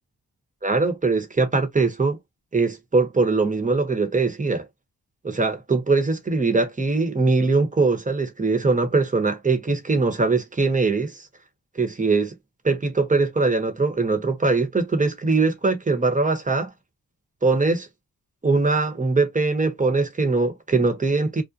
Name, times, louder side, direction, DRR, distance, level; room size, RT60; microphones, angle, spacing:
voice 1, 0.6-2.2 2.5-4.7 5.2-11.3 11.7-12.3 12.6-16.7 17.4-17.9 18.4-21.4, right 3 dB, 25° right, 1.0 m, -21 dB
2.5 x 2.1 x 2.6 m
cardioid pair, 70°, 33 cm